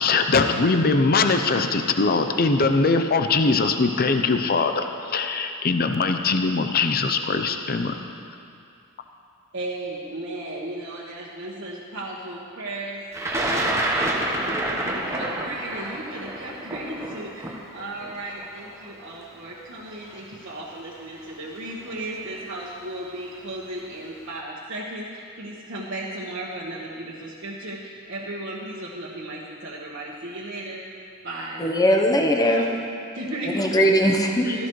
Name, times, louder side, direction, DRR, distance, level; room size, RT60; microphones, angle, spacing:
voice 1, 0.0-7.9 34.5-34.7, left 4 dB, 45° left, 7 dB, 0.6 m, -21 dB
voice 2, 9.5-13.1 13.5-30.8 31.2-31.6 32.4-32.7 33.1-33.8 34.4-34.7, right 1 dB, 60° right, -7 dB, 1.4 m, -35 dB
Thunder, 13.1-19.2 20.1-20.2 21.3-21.6 21.9-22.4, right 1 dB, 15° right, 1.1 m, -28 dB
voice 3, 31.6-32.7 33.5-34.5, equal, 15° left, 1 dB, 0.9 m, -19 dB
16.5 x 14.0 x 3.2 m, 2.4 s
head